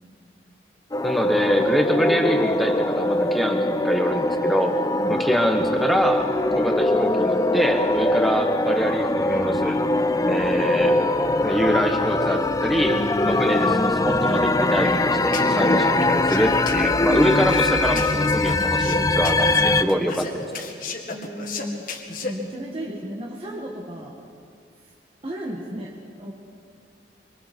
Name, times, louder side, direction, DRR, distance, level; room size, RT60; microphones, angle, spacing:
sound 1, 0.9-19.8, left 2 dB, 20° left, 0.5 m, -22 dB
voice 1, 1.0-4.7 5.1-6.2 6.5-9.8 10.3-10.9 11.4-20.6, equal, ahead, 3 dB, 1.5 m, -24 dB
sound 2, 15.2-22.3, left 2 dB, 50° left, 2.1 m, -31 dB
voice 2, 21.1-21.9 22.2-24.2 25.2-26.3, equal, 30° right, -3 dB, 2.0 m, -34 dB
25.5 x 25.0 x 4.7 m, 2.3 s
head